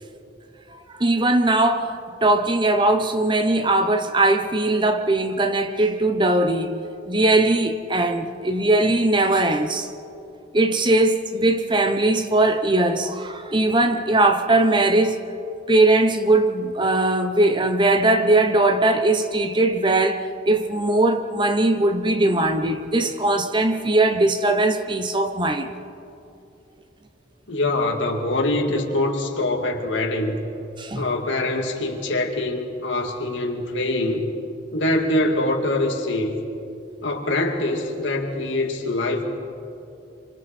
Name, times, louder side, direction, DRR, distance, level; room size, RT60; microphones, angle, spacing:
voice 1, 1.0-9.9 10.5-15.2 15.7-25.7 30.8-31.0, right 2 dB, 25° right, 1.0 m, -20 dB
voice 2, 27.5-30.5 30.9-34.3 34.7-36.4 37.0-39.2, left 2 dB, 75° left, 2.4 m, -24 dB
27.5 x 26.0 x 4.4 m
head